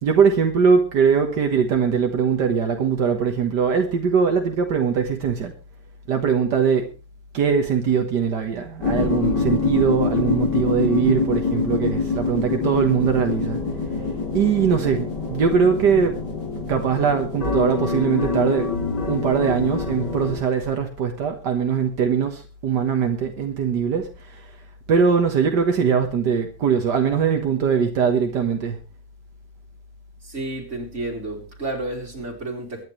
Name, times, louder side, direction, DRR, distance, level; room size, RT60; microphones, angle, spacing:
voice 1, 0.0-5.5 6.1-6.9 7.3-13.6 14.3-16.2 16.7-18.7 19.1-24.6 24.9-28.8, right 6 dB, 80° right, 4 dB, 2.0 m, -21 dB
sound 1, 8.8-20.4, left 4 dB, 80° left, 4.2 m, -25 dB
voice 2, 30.2-32.8, right 2 dB, 40° right, 1 dB, 3.9 m, -31 dB
23.5 x 10.5 x 3.2 m, 0.32 s
omnidirectional pair, 1.8 m